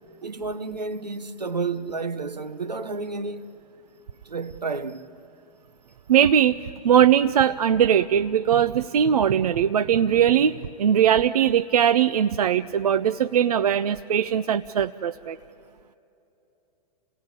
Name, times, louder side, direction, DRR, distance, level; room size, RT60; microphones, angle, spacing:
voice 1, 0.2-3.5 4.2-5.1, right 4 dB, 80° right, 1.2 m, -31 dB
voice 2, 6.1-15.4, right 9 dB, 65° right, 0.6 m, -20 dB
29.0 x 18.0 x 9.8 m
figure-of-eight pair, 110°, 21 cm